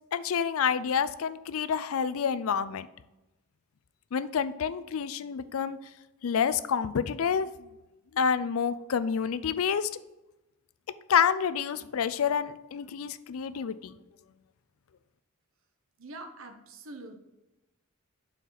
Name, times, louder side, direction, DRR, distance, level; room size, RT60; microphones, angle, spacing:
voice 1, 0.1-2.9 4.1-5.8 6.2-7.5 8.1-9.9 11.1-13.9, left 7 dB, 85° left, 14 dB, 0.4 m, -28 dB
voice 2, 16.0-17.2, right 2 dB, 70° right, 6 dB, 0.9 m, -44 dB
7.0 x 4.5 x 3.9 m, 1.0 s
head